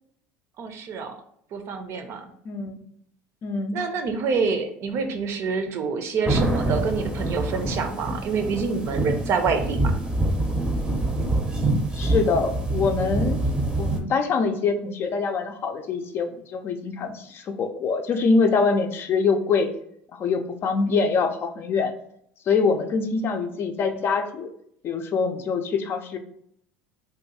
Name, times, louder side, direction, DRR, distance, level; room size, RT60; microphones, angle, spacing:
voice 1, 0.6-1.1 1.5-2.3 3.7-9.9, right 5 dB, 55° right, 6 dB, 0.6 m, -27 dB
voice 2, 2.5-2.8 3.4-3.8 12.0-13.4 13.8-19.7 20.1-21.9 22.5-24.5 24.8-26.2, left 4 dB, 45° left, 7 dB, 0.4 m, -24 dB
sound 1, 6.3-14.0, right 2 dB, 15° right, 0.6 m, -25 dB
2.6 x 2.3 x 4.1 m, 0.70 s
supercardioid pair, 90°, 5 cm